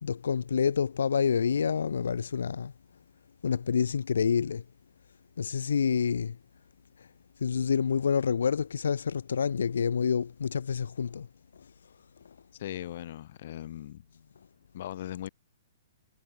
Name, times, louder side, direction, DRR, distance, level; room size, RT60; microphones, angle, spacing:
voice 1, 0.0-2.7 3.4-4.6 5.4-6.4 7.4-11.3, left 6 dB, 90° left, 2.2 m, -27 dB
voice 2, 12.6-14.0 14.7-15.3, left 12 dB, 55° left, 6.2 m, -39 dB
hypercardioid pair, 155°, 0 cm